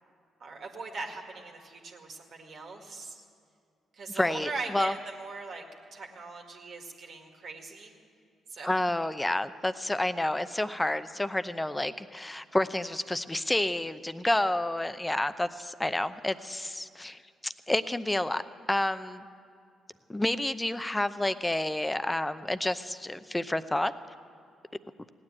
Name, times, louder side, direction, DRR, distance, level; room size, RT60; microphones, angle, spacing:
voice 1, 0.4-3.2 3.9-5.6 5.9-7.9 8.5-8.8, right 3 dB, 60° right, 1 dB, 2.0 m, -40 dB
voice 2, 4.1-4.9 8.6-18.4 18.7-19.2 20.1-23.9, left 1 dB, 15° left, 12 dB, 0.7 m, -29 dB
17.0 x 9.8 x 8.8 m, 2.3 s
hypercardioid pair, 50°, 0 cm